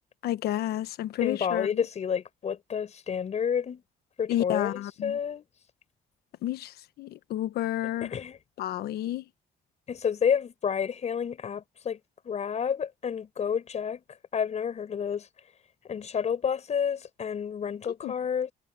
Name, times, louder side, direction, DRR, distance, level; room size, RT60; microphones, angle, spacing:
voice 1, 0.2-1.8 4.3-5.2 6.4-8.1 8.6-9.2 18.0-18.1, left 13 dB, 85° left, 1.2 m, -31 dB
voice 2, 1.2-3.8 4.2-5.4 7.8-8.4 9.9-12.0 12.2-14.0 14.3-15.3 15.9-18.5, left 7 dB, 45° left, 6.6 m, -30 dB
cardioid pair, 125°, 16 cm